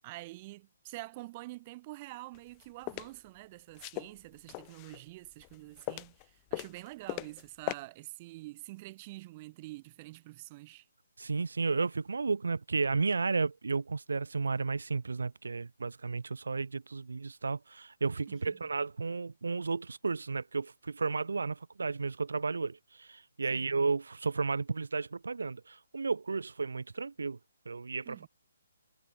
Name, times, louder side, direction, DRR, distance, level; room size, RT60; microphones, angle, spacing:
voice 1, 0.0-10.9 18.3-18.7 23.5-23.8 28.1-28.3, right 20 dB, 30° right, 3.6 m, -47 dB
sound 1, 2.3-3.1 3.7-5.0 5.4-6.2 6.5-7.4 7.7-7.8, left 40 dB or more, 25° left, 4.0 m, -38 dB
voice 2, 11.2-27.4 27.6-28.3, right 4 dB, 80° right, 3.3 m, -33 dB
hypercardioid pair, 150°, 0 cm